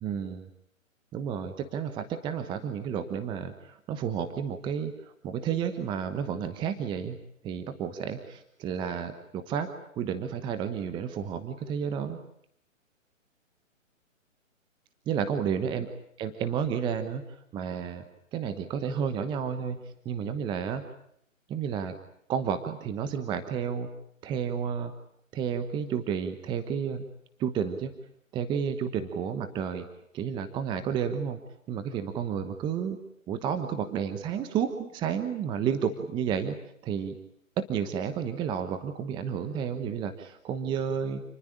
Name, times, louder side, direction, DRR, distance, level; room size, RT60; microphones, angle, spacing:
voice 1, 0.0-0.5 1.1-7.2 7.4-9.7 10.0-12.2 15.1-15.9 16.2-17.3 17.5-18.0 18.3-20.8 21.5-21.9 22.3-23.9 24.2-24.9 25.3-27.0 27.4-27.9 28.3-29.9 30.1-31.4 31.7-33.0 33.3-36.6 36.8-37.2 37.6-41.2, right 7 dB, 10° right, 9 dB, 1.1 m, -31 dB
28.5 x 20.5 x 8.7 m, 0.71 s
hypercardioid pair, 145°, 40 cm